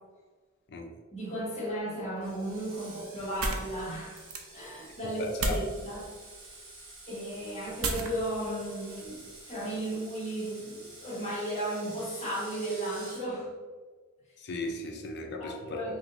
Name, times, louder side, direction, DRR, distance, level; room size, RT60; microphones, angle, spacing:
voice 1, 1.1-4.2 4.5-6.1 7.1-13.5 15.4-16.0, right 1 dB, 30° left, -7 dB, 1.3 m, -35 dB
Screech, 2.2-13.2, right 2 dB, 70° right, 1.2 m, -49 dB
sound 1, 2.2-9.7, right 2 dB, 85° right, 0.6 m, -38 dB
voice 2, 5.2-5.6 14.4-16.0, left 2 dB, 50° left, 3 dB, 0.5 m, -36 dB
5.2 x 2.9 x 2.6 m, 1.5 s
head